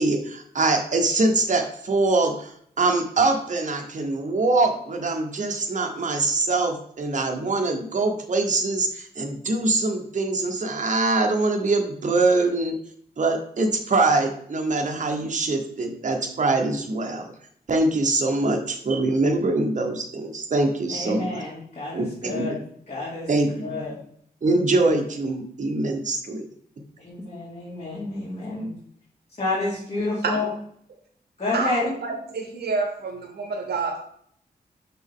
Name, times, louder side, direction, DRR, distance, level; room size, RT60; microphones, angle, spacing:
voice 1, 0.0-12.8 13.2-17.3 17.7-21.4 21.9-22.6 23.3-23.8 24.4-26.5, right 2 dB, 50° right, 3 dB, 0.9 m, -23 dB
voice 2, 20.9-23.3 23.6-24.0 27.0-28.7 29.4-30.5 31.4-31.9, left 2 dB, 40° left, -7 dB, 2.3 m, -29 dB
voice 3, 31.5-34.0, right 4 dB, 80° right, 4 dB, 0.7 m, -28 dB
6.2 x 4.3 x 3.6 m, 0.65 s
cardioid pair, 70°, 16 cm